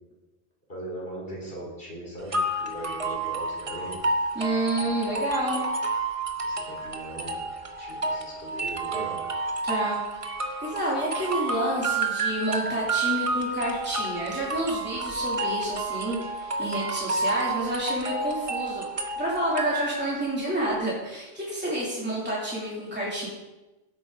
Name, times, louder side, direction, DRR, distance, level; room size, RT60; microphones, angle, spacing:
voice 1, 0.7-4.0 4.8-4.9 6.4-7.4 7.8-9.2, right 1 dB, 65° left, -4 dB, 4.6 m, -39 dB
sound 1, 2.3-20.2, right 3 dB, 35° right, 1.0 m, -30 dB
voice 2, 4.3-5.6 9.7-10.0 10.6-18.9 19.2-23.3, right 1 dB, 10° right, -6 dB, 3.0 m, -29 dB
16.5 x 8.7 x 3.9 m, 1.1 s
omnidirectional pair, 1.1 m